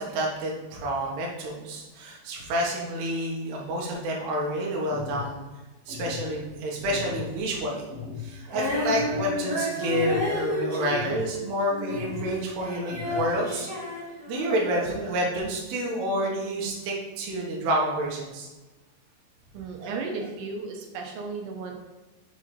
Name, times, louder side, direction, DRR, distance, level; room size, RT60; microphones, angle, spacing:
voice 1, 0.0-5.4 5.9-7.9 8.2-13.9 14.3-18.5 19.8-19.9, right 1 dB, 70° right, -2 dB, 3.0 m, -29 dB
sound 1, 4.9-5.3 5.9-6.3 6.9-7.3 7.9-8.3 8.9-9.3 9.9-10.3 10.9-11.3 11.9-12.3 12.9-13.3, left 7 dB, 35° left, 1.5 m, -37 dB
Female singing, 8.5-12.3 12.6-14.7, left 1 dB, 30° right, 1.6 m, -31 dB
voice 2, 19.5-21.7, right 4 dB, 90° right, 2 dB, 3.1 m, -34 dB
7.4 x 3.8 x 4.9 m, 1.2 s
omnidirectional pair, 5.4 m